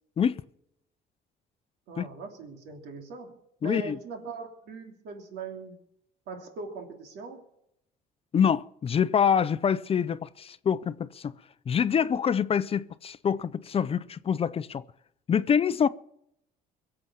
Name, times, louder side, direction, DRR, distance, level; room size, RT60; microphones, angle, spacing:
voice 1, 1.9-5.8 6.3-7.4, right 4 dB, 80° right, 3.1 m, -41 dB
voice 2, 3.6-4.0 8.3-11.4 11.7-14.8 15.3-15.9, left 7 dB, 35° left, 0.6 m, -25 dB
23.0 x 7.9 x 7.1 m
cardioid pair, 110°, 17 cm